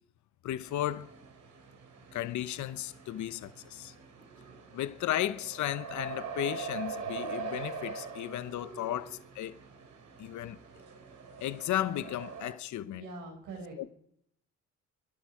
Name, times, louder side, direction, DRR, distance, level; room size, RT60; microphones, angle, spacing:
voice 1, 0.4-1.1 2.1-3.9 4.7-9.6 10.2-10.6 11.4-13.1 13.8-13.9, left 12 dB, 70° left, 0.9 m, -34 dB
sound 1, 0.7-12.5, right 5 dB, 70° right, 3.3 m, -43 dB
voice 2, 12.8-13.8, right 3 dB, 90° right, 5.9 m, -43 dB
24.0 x 11.5 x 4.9 m
cardioid pair, 90°, 30 cm